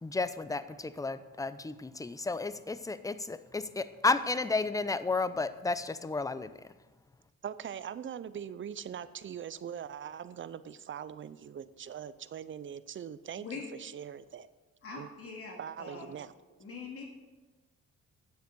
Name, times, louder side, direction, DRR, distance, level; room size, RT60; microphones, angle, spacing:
voice 1, 0.0-6.6, left 3 dB, 10° left, 14 dB, 0.5 m, -32 dB
voice 2, 7.4-14.5 14.9-15.1 15.6-16.3, right 8 dB, 40° right, 15 dB, 0.6 m, -42 dB
voice 3, 14.8-16.1 16.6-17.1, left 4 dB, 50° left, 0 dB, 2.3 m, -43 dB
9.5 x 7.3 x 6.8 m, 1.2 s
cardioid pair, 90°, 30 cm